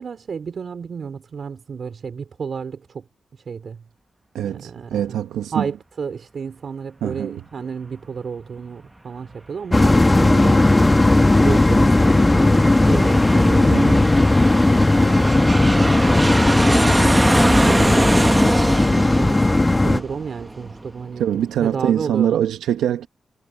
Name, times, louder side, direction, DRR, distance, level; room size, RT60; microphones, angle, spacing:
voice 1, 0.0-3.0 3.3-3.8 4.4-5.2 5.5-11.1 11.4-14.1 15.0-15.9 16.7-18.0 18.9-22.4, right 6 dB, 60° right, 4.7 m, -32 dB
voice 2, 4.3-5.7 7.0-7.4 13.7-14.1 21.2-23.1, right 10 dB, 85° right, 1.2 m, -23 dB
sound 1, 9.7-20.0, left 2 dB, 25° left, 1.6 m, -16 dB
Aircraft, 10.1-21.1, right 1 dB, 20° right, 1.3 m, -24 dB
supercardioid pair, 45°, 0 cm